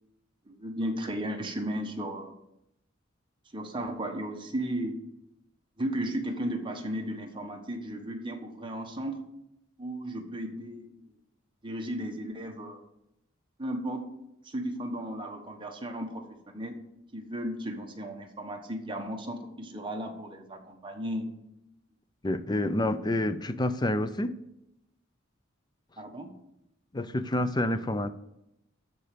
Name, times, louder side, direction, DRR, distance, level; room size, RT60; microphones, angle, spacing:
voice 1, 0.5-2.3 3.5-5.0 5.8-9.2 9.8-10.9 11.6-12.8 13.6-14.0 14.4-16.2 16.5-16.7 17.1-21.3 26.0-26.3, right 1 dB, 25° right, 3 dB, 1.3 m, -35 dB
voice 2, 22.2-24.3 26.9-28.1, left 1 dB, 20° left, 12 dB, 0.5 m, -28 dB
13.0 x 4.5 x 6.8 m, 0.84 s
head